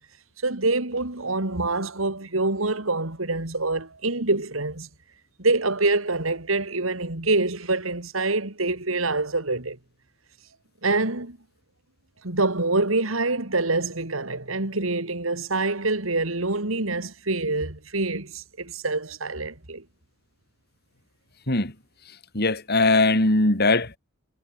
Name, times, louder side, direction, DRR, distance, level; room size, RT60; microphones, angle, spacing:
voice 1, 0.4-4.9 5.4-9.8 10.8-11.4 12.2-19.8, right 2 dB, 85° right, 3.2 m, -26 dB
voice 2, 22.3-24.0, left 2 dB, 50° left, 4.5 m, -20 dB
head